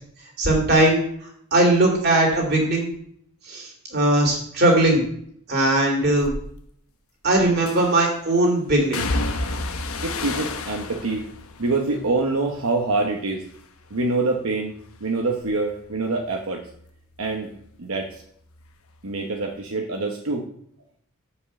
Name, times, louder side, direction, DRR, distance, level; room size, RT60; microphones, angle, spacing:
voice 1, 0.4-1.0 1.5-2.9 3.5-5.0 5.5-6.3 7.2-9.0, right 1 dB, 45° right, 1 dB, 2.9 m, -19 dB
sound 1, 6.2-6.4 7.7-8.1 8.9-13.2 13.5-14.1 14.5-17.8 18.0-19.2 19.4-19.6, left 2 dB, 75° left, 1.0 m, -32 dB
voice 2, 10.0-11.2 11.6-13.4 13.9-14.8 15.0-16.6 17.2-17.5 17.8-18.2 19.0-20.4, right 3 dB, 75° right, 1 dB, 1.1 m, -25 dB
7.4 x 5.4 x 7.0 m, 0.67 s
head